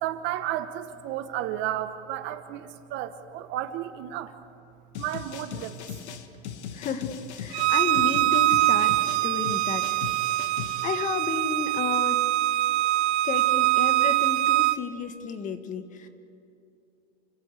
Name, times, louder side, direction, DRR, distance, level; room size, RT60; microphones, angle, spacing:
voice 1, 0.0-4.3 4.9-6.0 6.4-6.5, right 12 dB, 35° right, 10 dB, 1.0 m, -33 dB
sound 1, 4.9-10.9, left 8 dB, 75° left, 2.0 m, -39 dB
voice 2, 6.7-9.0 9.2-10.0 10.8-12.2 13.2-16.1, left 6 dB, 20° left, 9 dB, 1.2 m, -32 dB
Bowed string instrument, 7.5-14.8, right 16 dB, 70° right, 0.8 m, -23 dB
29.0 x 16.0 x 8.2 m, 2.6 s
supercardioid pair, 160°, 34 cm